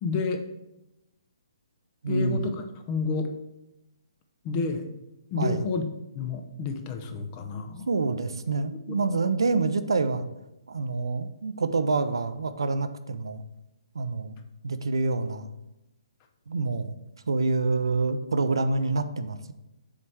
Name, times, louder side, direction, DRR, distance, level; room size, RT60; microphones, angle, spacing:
voice 1, 0.0-0.4 2.1-3.3 4.4-4.8 5.3-5.8 6.1-7.8, left 4 dB, 30° left, 6 dB, 0.7 m, -30 dB
voice 2, 2.0-2.4 5.4-5.6 7.9-10.2 10.7-13.4 13.9-14.4 14.6-15.5 16.5-17.0 17.3-19.5, right 3 dB, 70° right, 10 dB, 0.5 m, -27 dB
7.3 x 3.2 x 4.6 m, 0.91 s
figure-of-eight pair, 130°, 2 cm